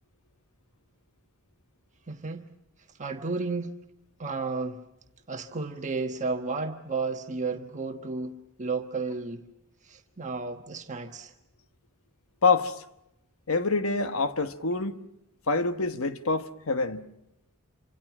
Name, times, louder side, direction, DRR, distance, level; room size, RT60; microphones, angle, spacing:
voice 1, 2.1-2.5 3.0-3.7 4.2-4.8 5.3-9.4 9.8-11.3, right 4 dB, 35° right, 1.3 m, -32 dB
voice 2, 12.4-12.7 13.5-15.0 15.5-17.1, left 3 dB, 70° left, 1.2 m, -26 dB
28.0 x 26.0 x 6.1 m
head